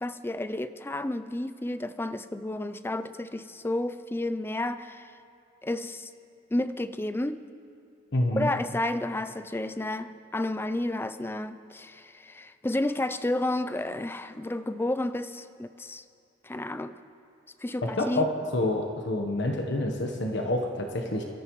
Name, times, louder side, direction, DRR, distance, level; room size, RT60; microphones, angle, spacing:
voice 1, 0.0-5.1 5.6-6.1 6.5-7.4 8.3-16.0 16.4-16.9 17.6-18.3, left 1 dB, 10° left, 11 dB, 0.4 m, -31 dB
voice 2, 8.1-8.5 17.8-21.2, left 1 dB, 60° left, 2 dB, 1.1 m, -28 dB
24.5 x 13.5 x 3.1 m, 2.5 s
head